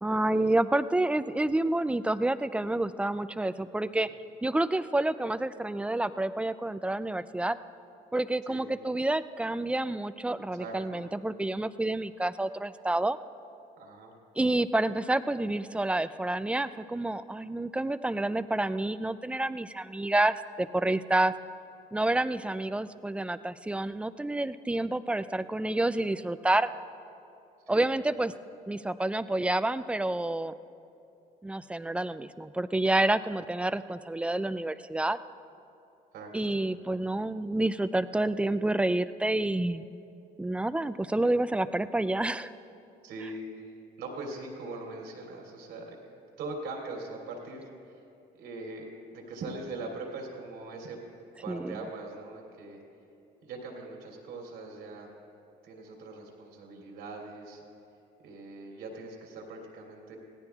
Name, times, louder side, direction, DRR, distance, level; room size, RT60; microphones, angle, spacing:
voice 1, 0.0-4.1 4.4-7.6 8.1-13.2 14.4-21.3 21.9-26.7 27.7-28.3 28.7-30.5 31.4-35.2 36.3-39.9 40.4-42.5 51.5-51.8, right 2 dB, 5° right, 13 dB, 0.3 m, -29 dB
voice 2, 10.6-11.0 13.8-14.1 22.2-22.3 27.7-27.9 36.1-36.5 43.0-46.0 46.4-47.7 48.3-51.0 51.4-52.8 53.4-55.1 55.6-57.6 58.2-60.2, right 2 dB, 90° right, -1 dB, 3.0 m, -41 dB
24.5 x 17.5 x 2.4 m, 2.7 s
cardioid pair, 110°, 17 cm